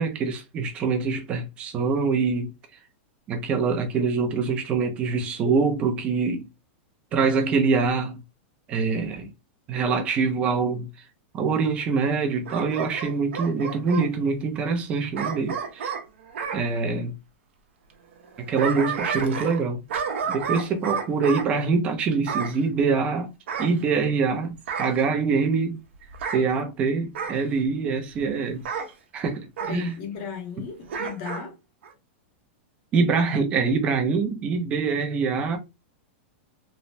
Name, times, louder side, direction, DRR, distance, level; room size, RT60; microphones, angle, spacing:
voice 1, 0.0-2.5 3.3-6.5 7.1-8.2 8.7-9.3 9.7-10.9 11.3-15.9 16.5-17.1 18.4-19.8 20.3-23.3 23.6-25.8 26.3-28.6 29.1-30.0 32.9-35.6, right 4 dB, 15° right, 0.4 m, -24 dB
Bark / Growling, 12.4-14.1 15.1-16.6 18.2-19.6 19.9-21.5 22.3-22.6 23.5-24.3 24.7-25.0 26.1-26.4 27.1-27.4 28.6-28.9 29.6-29.8 30.9-31.4 31.8-31.9, right 6 dB, 70° right, 0.7 m, -31 dB
voice 2, 29.6-31.6 34.9-35.1, left 6 dB, 30° left, 0.6 m, -36 dB
3.1 x 2.1 x 2.5 m
supercardioid pair, 180°, 7 cm